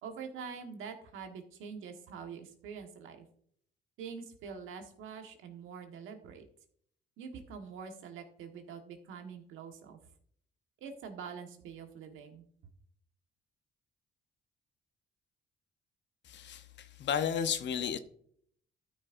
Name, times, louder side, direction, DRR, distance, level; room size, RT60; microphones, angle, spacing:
voice 1, 0.0-3.3 4.0-6.4 7.2-10.0 10.8-12.4, right 6 dB, 85° right, 1.5 m, -45 dB
voice 2, 16.3-18.0, left 8 dB, 65° left, 0.9 m, -33 dB
13.0 x 6.3 x 2.6 m
cardioid pair, 90°, 20 cm